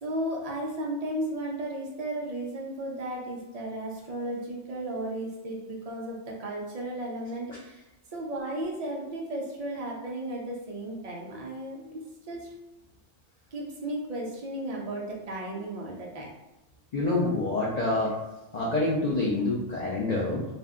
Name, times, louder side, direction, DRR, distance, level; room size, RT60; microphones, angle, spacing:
voice 1, 0.0-7.8 8.1-12.0 12.3-12.5 13.5-16.3, right 1 dB, 70° right, -2 dB, 0.3 m, -34 dB
voice 2, 16.9-18.2 18.5-20.5, left 2 dB, 90° left, -4 dB, 0.3 m, -27 dB
2.5 x 2.1 x 3.5 m, 0.97 s
omnidirectional pair, 1.3 m